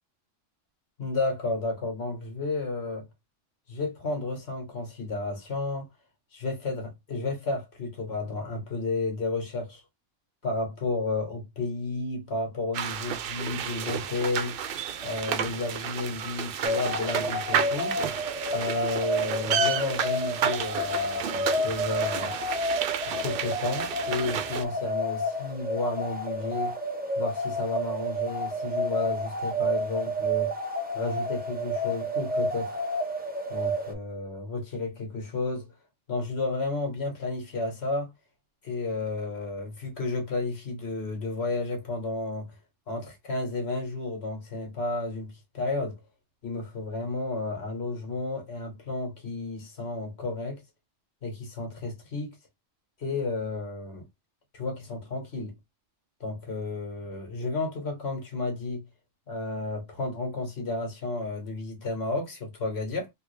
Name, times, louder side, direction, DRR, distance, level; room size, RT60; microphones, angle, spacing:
voice 1, 1.0-3.1 3.7-5.9 6.3-9.8 10.4-14.6 15.0-18.0 18.5-22.3 23.1-26.8 27.2-30.5 30.9-32.8 33.5-35.7 36.1-38.1 38.6-42.5 42.9-46.0 46.4-50.6 51.2-52.3 53.0-54.1 54.5-55.5 56.2-58.8 59.3-63.1, left 3 dB, 60° left, 1.7 m, -32 dB
sound 1, 12.7-24.6, right 8 dB, 60° right, 0.6 m, -31 dB
sound 2, 16.6-33.9, equal, 10° right, 0.7 m, -30 dB
3.4 x 2.7 x 3.2 m
omnidirectional pair, 1.3 m